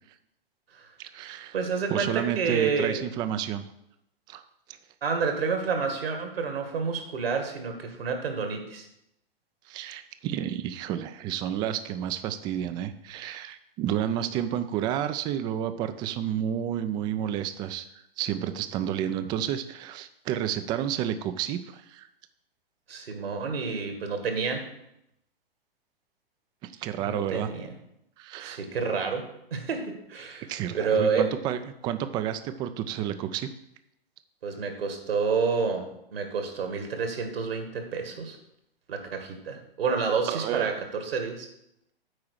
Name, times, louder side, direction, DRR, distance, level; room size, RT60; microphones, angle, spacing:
voice 1, 1.0-1.5 1.9-3.6 4.3-4.4 9.7-17.9 18.2-22.1 26.8-27.5 28.2-28.6 30.5-33.5 40.3-40.7, right 10 dB, 15° right, 11 dB, 0.3 m, -30 dB
voice 2, 1.5-3.0 5.0-8.9 22.9-24.7 27.0-27.7 28.4-29.2 29.5-30.5 30.7-31.3 34.4-38.4 38.9-41.5, right 5 dB, 75° right, 5 dB, 2.0 m, -29 dB
8.8 x 4.7 x 6.4 m, 0.81 s
hypercardioid pair, 115°, 30 cm